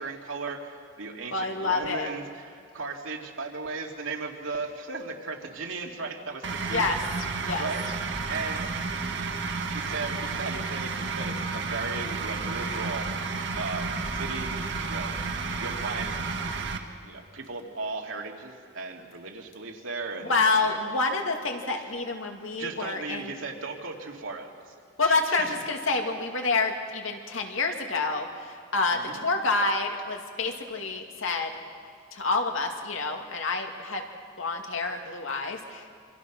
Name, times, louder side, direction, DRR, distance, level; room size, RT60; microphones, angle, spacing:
voice 1, 0.0-6.9 7.6-7.9 8.3-8.7 9.6-13.1 13.6-16.2 17.0-20.8 21.7-21.9 22.6-24.7 25.0-25.5 28.9-29.3, right 3 dB, 85° right, 1 dB, 2.6 m, -36 dB
voice 2, 1.3-2.1 6.7-7.0 7.4-7.7 20.3-23.3 25.0-31.5 32.1-34.0 34.4-35.9, left 3 dB, 85° left, 3 dB, 2.4 m, -28 dB
sound 1, 6.4-16.8, right 4 dB, 60° right, 1.7 m, -31 dB
27.0 x 25.0 x 6.2 m, 2.2 s
head